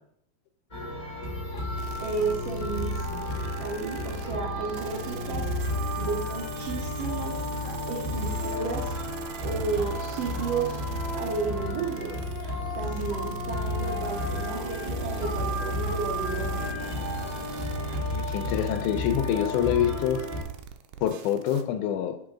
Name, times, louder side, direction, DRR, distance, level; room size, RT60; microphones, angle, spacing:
sound 1, 0.7-20.4, left 1 dB, 15° left, 1.5 m, -32 dB
sound 2, 1.8-21.6, right 8 dB, 90° right, 2.1 m, -43 dB
voice 1, 2.0-3.3 3.6-5.5 6.0-7.4 7.9-9.0 9.4-10.8 11.2-12.2 12.8-16.7, right 4 dB, 70° right, -1 dB, 1.6 m, -32 dB
voice 2, 18.2-20.3 21.0-22.2, left 10 dB, 85° left, 8 dB, 2.0 m, -26 dB
6.2 x 4.8 x 3.7 m, 0.68 s
omnidirectional pair, 3.6 m